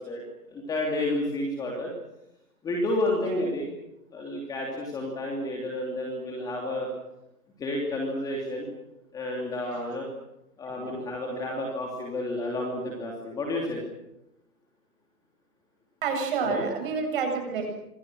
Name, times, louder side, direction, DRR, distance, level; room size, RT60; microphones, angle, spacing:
voice 1, 0.0-1.9 2.6-3.7 4.1-6.9 7.6-8.7 9.1-10.1 10.6-13.8 16.4-16.6, left 1 dB, 5° left, -1 dB, 3.1 m, -30 dB
voice 2, 10.7-11.1 16.0-17.6, right 5 dB, 30° right, 4 dB, 7.9 m, -29 dB
29.5 x 26.0 x 6.4 m, 0.88 s
hypercardioid pair, 155°, 50 cm